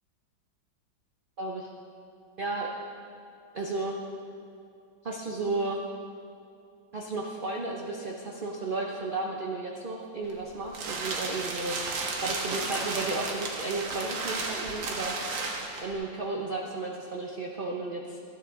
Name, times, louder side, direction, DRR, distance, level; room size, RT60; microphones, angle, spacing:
voice 1, 1.4-1.7 2.4-2.7 3.5-4.0 5.0-5.8 6.9-11.8 12.2-15.1 15.8-18.2, right 2 dB, 50° right, -1 dB, 0.6 m, -33 dB
sound 1, 10.2-15.9, right 3 dB, 85° right, 1.8 m, -33 dB
13.5 x 9.8 x 3.8 m, 2.4 s
omnidirectional pair, 2.0 m